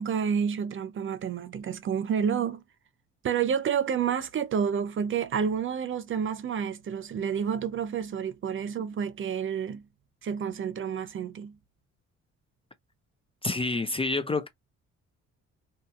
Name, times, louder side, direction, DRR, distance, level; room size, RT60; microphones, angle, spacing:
voice 1, 0.0-2.6 3.2-9.8 10.2-11.6, right 7 dB, 45° right, 0.5 m, -29 dB
voice 2, 13.4-14.5, left 3 dB, 20° left, 0.4 m, -28 dB
2.8 x 2.7 x 2.3 m
cardioid pair, 90°, 30 cm